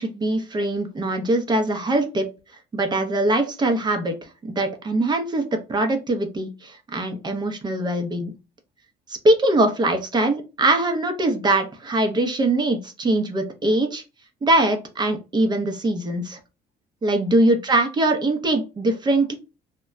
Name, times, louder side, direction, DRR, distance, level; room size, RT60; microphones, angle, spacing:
voice 1, 0.0-2.3 2.7-8.3 9.1-14.0 14.4-16.4 17.0-19.3, right 2 dB, 25° right, 5 dB, 0.6 m, -22 dB
2.2 x 2.0 x 3.5 m, 0.29 s
cardioid pair, 110°, 17 cm